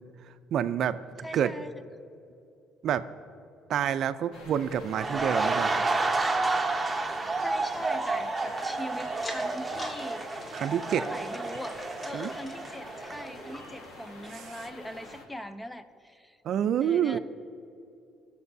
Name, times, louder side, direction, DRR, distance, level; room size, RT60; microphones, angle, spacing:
voice 1, 0.5-1.0 1.3-1.5 2.8-3.1 3.7-5.8 10.5-11.0 12.1-12.3 14.3-14.5 16.4-17.2, right 9 dB, 65° right, 12 dB, 0.5 m, -27 dB
voice 2, 1.2-1.7 7.4-10.2 10.9-16.4 16.8-17.2, equal, 10° left, 11 dB, 0.5 m, -41 dB
sound 1, 4.3-15.3, left 2 dB, 75° left, 1.4 m, -48 dB
sound 2, 4.9-13.8 14.1-14.3, right 3 dB, 20° right, 0.8 m, -30 dB
sound 3, 5.7-8.7 9.1-10.0 10.3-12.7 13.2-13.3 13.5-13.6 14.3-14.4, left 1 dB, 35° left, 1.6 m, -45 dB
19.0 x 6.8 x 2.7 m, 2.6 s
cardioid pair, 90°, 0 cm